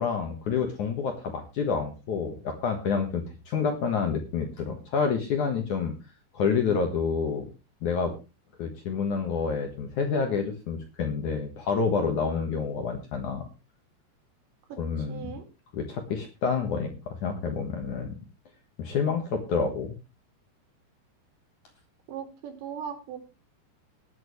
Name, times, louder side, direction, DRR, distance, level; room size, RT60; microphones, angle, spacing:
voice 1, 0.0-5.9 6.3-7.5 7.8-8.1 8.6-13.5 14.8-15.3 15.7-18.1 18.8-20.0, left 5 dB, 60° left, 4 dB, 2.3 m, -28 dB
voice 2, 14.7-15.4 22.1-23.2, right 8 dB, 75° right, 6 dB, 4.6 m, -39 dB
19.5 x 9.0 x 3.2 m, 0.29 s
omnidirectional pair, 5.2 m